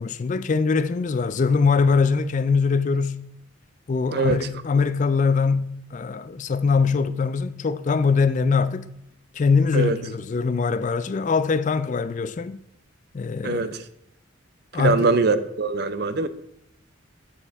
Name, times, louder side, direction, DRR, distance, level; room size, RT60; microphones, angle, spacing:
voice 1, 0.0-3.2 3.9-8.9 9.3-12.6 13.1-13.8 14.7-15.1, left 5 dB, 40° left, 0.3 m, -22 dB
voice 2, 4.1-4.5 9.7-10.0 13.4-13.8 14.8-16.3, right 3 dB, 50° right, 0.5 m, -22 dB
7.3 x 6.7 x 3.4 m
head